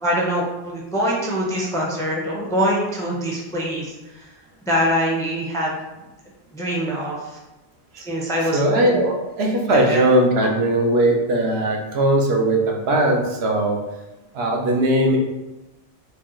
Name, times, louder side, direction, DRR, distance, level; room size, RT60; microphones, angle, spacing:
voice 1, 0.0-4.3 4.7-5.8 6.5-7.4 8.0-9.1 9.7-10.0, equal, 5° left, -3 dB, 0.5 m, -24 dB
voice 2, 8.5-9.1 9.4-13.8 14.3-15.2, right 1 dB, 70° right, 1 dB, 0.9 m, -19 dB
4.8 x 2.2 x 3.0 m, 1.0 s
omnidirectional pair, 1.1 m